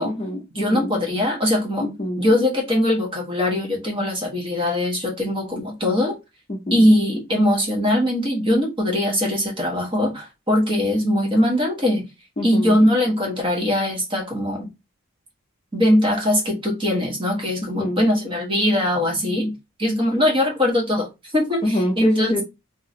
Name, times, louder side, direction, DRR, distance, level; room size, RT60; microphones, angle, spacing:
voice 1, 0.0-0.9 1.8-2.2 6.5-6.8 12.4-12.8 17.8-18.0 21.6-22.4, left 1 dB, 25° left, 0.6 m, -25 dB
voice 2, 0.5-1.8 2.2-6.2 6.7-12.0 12.4-14.7 15.7-19.5 19.8-21.6 22.0-22.4, left 1 dB, 25° right, 1.1 m, -21 dB
3.0 x 2.8 x 2.6 m
head